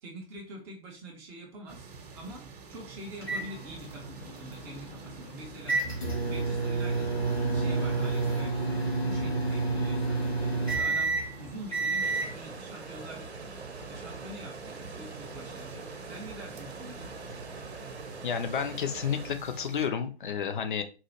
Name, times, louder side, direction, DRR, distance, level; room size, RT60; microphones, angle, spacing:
voice 1, 0.0-5.8 6.2-7.2 7.5-17.1, right 1 dB, 10° right, -1 dB, 0.4 m, -46 dB
sound 1, 1.7-19.9, right 4 dB, 40° right, 0.7 m, -49 dB
sound 2, 3.2-12.3, right 3 dB, 70° left, 1.7 m, -30 dB
sound 3, 12.0-19.3, right 3 dB, 90° right, 0.6 m, -43 dB
voice 2, 18.2-20.8, left 7 dB, 50° left, 8 dB, 0.6 m, -31 dB
3.9 x 2.4 x 2.9 m, 0.33 s
figure-of-eight pair, 120°, 32 cm